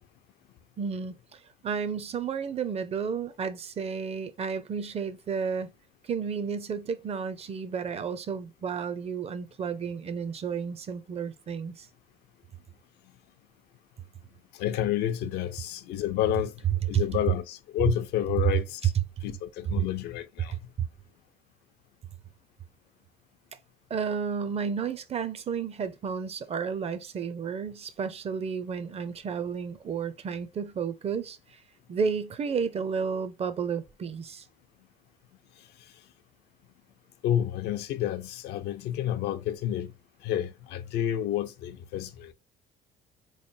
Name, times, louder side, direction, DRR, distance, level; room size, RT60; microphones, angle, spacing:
voice 1, 0.8-5.7 6.0-11.9 16.9-17.0 18.9-19.0 19.8-19.9 20.8-20.9 23.9-31.6 31.9-34.5, right 6 dB, 40° right, 0.5 m, -32 dB
voice 2, 14.5-18.9 19.2-20.6 37.2-39.9 40.2-42.3, left 11 dB, 80° left, 0.5 m, -30 dB
3.8 x 3.2 x 2.6 m
cardioid pair, 110°, 17 cm